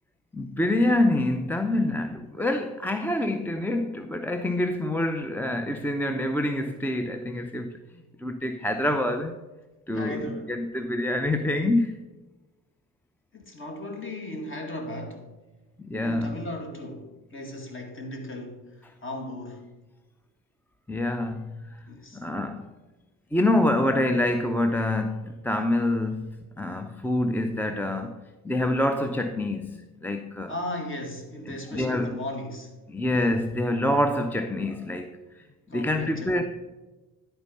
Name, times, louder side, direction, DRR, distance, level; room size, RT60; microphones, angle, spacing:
voice 1, 0.3-9.4 9.9-12.0 15.8-16.3 20.9-21.8 22.1-22.8 23.3-28.2 28.4-30.5 31.5-32.2 32.9-35.4 35.7-36.4, left 1 dB, 5° left, 0.5 m, -26 dB
voice 2, 9.9-10.5 13.3-15.3 16.0-19.7 21.9-22.2 30.5-32.8 35.7-36.4, left 1 dB, 30° left, 2.0 m, -36 dB
11.0 x 4.5 x 5.3 m
supercardioid pair, 75°, 38 cm